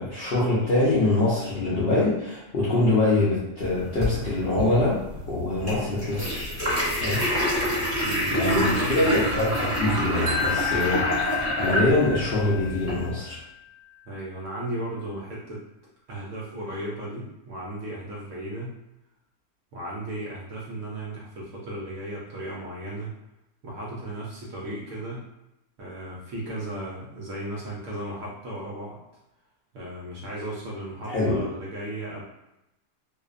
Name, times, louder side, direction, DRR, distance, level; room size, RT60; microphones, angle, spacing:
voice 1, 0.0-6.4 7.0-7.2 8.3-11.3 11.6-13.4 31.1-31.4, left 2 dB, 65° left, -9 dB, 0.6 m, -24 dB
sound 1, 3.6-13.1, equal, 10° right, 1.1 m, -28 dB
voice 2, 8.0-9.4 10.8-10.9 14.1-15.7 16.1-18.8 19.7-23.1 23.6-25.3 25.8-29.0 29.7-32.2, right 1 dB, 70° right, -5 dB, 0.8 m, -35 dB
Wind chime, 10.3-13.4, left 9 dB, 45° right, 0.4 m, -32 dB
2.6 x 2.1 x 2.4 m, 0.93 s
omnidirectional pair, 1.6 m